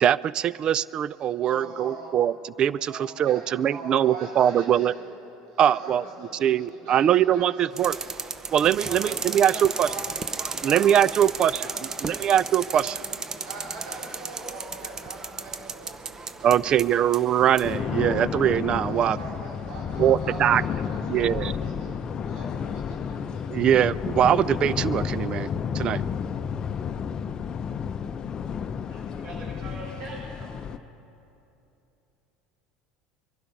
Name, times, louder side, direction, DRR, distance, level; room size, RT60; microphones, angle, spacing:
voice 1, 0.0-4.9 5.6-6.0 6.4-8.0 8.5-9.9 10.6-11.7 12.0-12.9 16.4-19.2 20.0-20.6 21.1-21.5 23.5-25.5 25.7-26.0, right 10 dB, 40° right, 20 dB, 0.4 m, -22 dB
voice 2, 1.4-2.1 2.8-4.9 5.5-8.1 8.8-12.2 12.7-12.9 13.3-17.3 18.9-23.5, right 2 dB, 90° right, -5 dB, 3.9 m, -42 dB
sound 1, 7.8-17.7, right 4 dB, 25° right, 0.8 m, -35 dB
sound 2, 17.6-30.8, left 7 dB, 35° left, 0.6 m, -31 dB
voice 3, 28.9-30.6, right 2 dB, 65° right, -7 dB, 4.7 m, -41 dB
23.0 x 12.0 x 5.2 m, 2.9 s
supercardioid pair, 115°, 2 cm